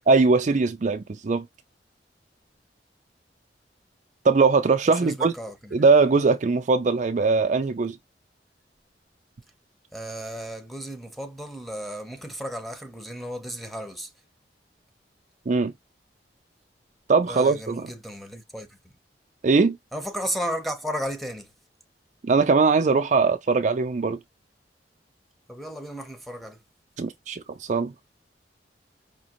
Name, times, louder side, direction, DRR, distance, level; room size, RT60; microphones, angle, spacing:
voice 1, 0.1-1.4 4.2-5.3 5.7-8.0 15.5-15.7 17.1-17.9 19.4-19.8 22.2-24.2 27.0-27.9, right 4 dB, 45° right, 0.4 m, -21 dB
voice 2, 5.0-5.7 9.9-14.1 17.3-18.7 19.9-21.5 25.5-26.6, equal, ahead, 0.8 m, -34 dB
5.1 x 2.8 x 2.9 m
head